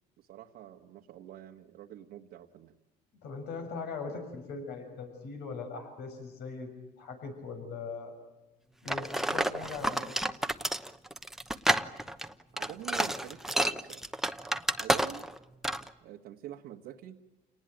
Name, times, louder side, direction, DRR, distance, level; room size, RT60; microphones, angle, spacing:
voice 1, 0.2-2.7 12.5-14.1 14.8-15.3 16.0-17.2, right 12 dB, 80° right, 1 dB, 1.5 m, -46 dB
voice 2, 3.2-6.7 7.0-8.1 8.8-10.1, left 4 dB, 75° left, 5 dB, 6.2 m, -40 dB
sound 1, 8.9-15.4 15.6-15.9, right 1 dB, ahead, 1.0 m, -30 dB
29.0 x 19.5 x 9.0 m, 1.1 s
cardioid pair, 110°, 17 cm